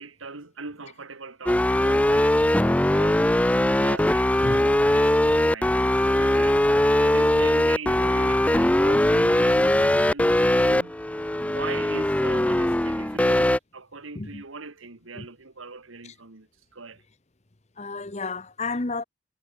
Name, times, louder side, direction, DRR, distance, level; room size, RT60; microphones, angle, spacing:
voice 1, 0.0-3.2 3.8-10.9 11.4-17.0, right 4 dB, 85° right, 1.9 m, -40 dB
sound 1, 1.5-13.6, left 1 dB, 5° left, 0.4 m, -21 dB
voice 2, 17.8-19.0, left 3 dB, 35° left, 1.0 m, -31 dB
head